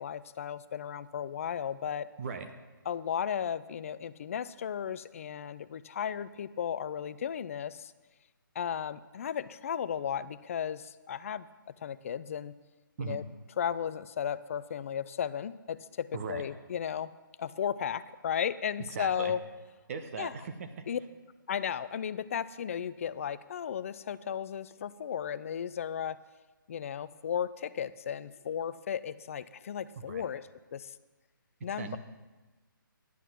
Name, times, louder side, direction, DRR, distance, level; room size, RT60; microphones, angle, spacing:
voice 1, 0.0-2.1 2.9-7.9 8.6-11.5 11.8-12.5 13.0-13.2 13.6-17.1 17.4-19.4 20.2-20.3 20.9-21.0 21.5-26.2 26.7-30.4 30.7-30.9 31.6-32.0, left 8 dB, 40° left, 15 dB, 0.4 m, -35 dB
voice 2, 2.2-2.5 13.0-13.2 16.1-16.4 18.9-19.4 19.9-20.7 30.0-30.3 31.7-32.0, right 5 dB, 40° right, 6 dB, 1.1 m, -38 dB
11.0 x 9.1 x 6.0 m, 1.2 s
hypercardioid pair, 150°, 12 cm